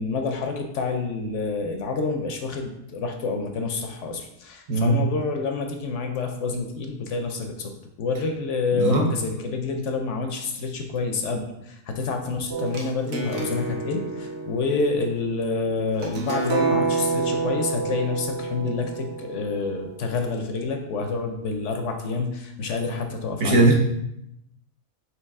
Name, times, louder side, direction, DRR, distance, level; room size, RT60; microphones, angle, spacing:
voice 1, 0.0-7.7 8.0-23.6, left 4 dB, 70° left, 4 dB, 0.9 m, -28 dB
voice 2, 4.7-5.0 8.7-9.1 23.4-23.7, right 2 dB, 75° right, 0 dB, 1.3 m, -19 dB
sound 1, 12.5-20.2, right 4 dB, 55° right, 0.9 m, -29 dB
4.6 x 2.8 x 3.5 m, 0.81 s
omnidirectional pair, 1.4 m